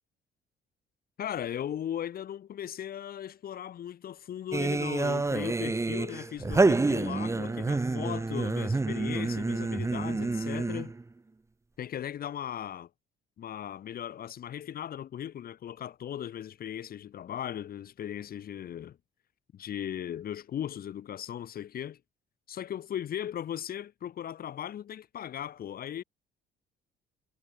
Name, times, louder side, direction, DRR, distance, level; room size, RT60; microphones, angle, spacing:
voice 1, 1.2-10.9 11.8-12.9 13.4-19.0 19.5-22.0 22.5-26.0, left 10 dB, 55° left, 1.5 m, -37 dB
sound 1, 4.5-11.0, right 3 dB, 15° right, 1.0 m, -28 dB
cardioid pair, 95°, 18 cm